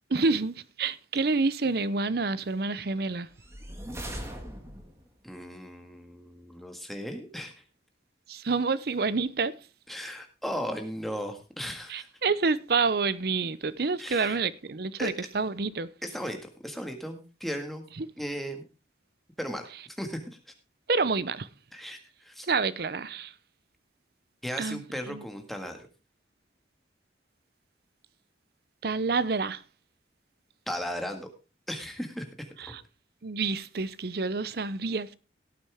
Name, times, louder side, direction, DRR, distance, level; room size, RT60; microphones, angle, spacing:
voice 1, 0.1-3.3 8.3-9.5 11.9-15.9 18.0-18.1 20.9-21.5 22.5-23.3 24.6-25.2 28.8-29.6 32.6-32.8 33.2-35.2, right 4 dB, 55° right, 0.7 m, -28 dB
sound 1, 3.3-5.1, right 1 dB, 15° right, 1.9 m, -40 dB
voice 2, 5.2-7.6 9.9-12.1 14.0-14.4 15.0-15.1 16.0-17.8 18.2-18.6 19.4-20.3 21.7-22.5 24.4-25.9 30.7-31.3 31.7-32.8, equal, ahead, 1.7 m, -36 dB
17.5 x 8.7 x 3.5 m
head